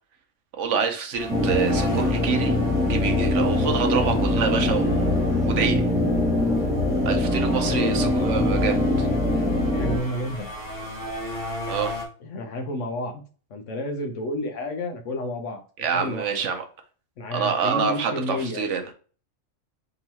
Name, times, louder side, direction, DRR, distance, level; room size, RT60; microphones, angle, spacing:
voice 1, 0.6-2.6 2.9-5.2 5.4-5.8 7.1-9.1 11.7-11.9 15.8-16.6 17.3-18.8, right 6 dB, 70° right, 5 dB, 1.0 m, -26 dB
sound 1, 1.1-12.0, left 1 dB, 25° left, 1.8 m, -36 dB
sound 2, 1.3-10.0, left 1 dB, 5° right, 0.7 m, -22 dB
voice 2, 7.5-7.9 9.7-10.5 12.2-13.2 13.5-16.4 17.2-18.6, left 1 dB, 70° left, 5 dB, 1.1 m, -31 dB
3.8 x 3.0 x 4.1 m, 0.39 s
omnidirectional pair, 1.4 m